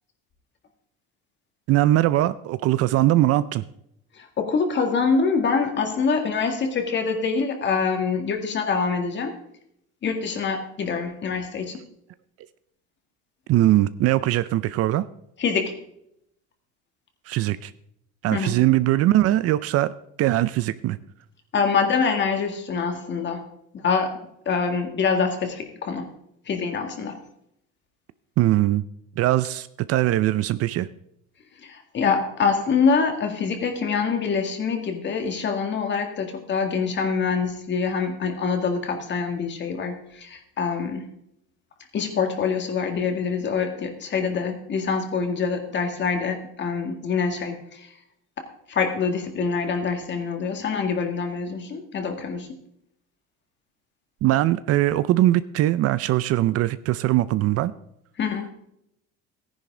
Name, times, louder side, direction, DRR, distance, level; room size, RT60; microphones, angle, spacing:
voice 1, 1.7-3.6 13.5-15.1 17.3-17.7 18.2-19.9 20.2-21.0 28.4-28.8 29.2-30.9 54.2-57.7, right 15 dB, 50° right, 16 dB, 0.5 m, -21 dB
voice 2, 4.1-9.3 10.0-11.8 15.4-15.7 18.3-18.6 21.5-23.5 23.7-24.1 24.5-26.1 26.5-27.2 31.6-41.0 41.9-47.9 48.4-52.6 58.2-58.5, left 5 dB, 35° left, 5 dB, 2.1 m, -25 dB
14.0 x 10.5 x 3.8 m, 0.75 s
cardioid pair, 130°, 31 cm